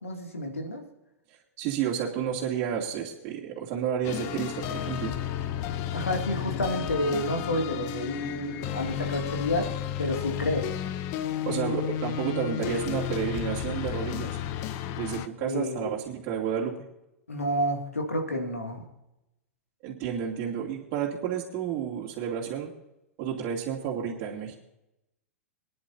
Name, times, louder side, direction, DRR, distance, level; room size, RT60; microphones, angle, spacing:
voice 1, 0.0-0.8 5.9-9.7 10.0-10.7 15.4-16.0 17.3-18.8, left 1 dB, 85° left, 3 dB, 2.4 m, -30 dB
voice 2, 1.6-5.1 11.5-14.4 14.9-16.7 19.8-22.7 23.2-24.6, right 8 dB, 40° right, -4 dB, 2.6 m, -31 dB
sound 1, 4.0-15.3, left 11 dB, 40° left, 0.9 m, -32 dB
24.0 x 10.5 x 2.8 m, 0.89 s
figure-of-eight pair, 100°, 7 cm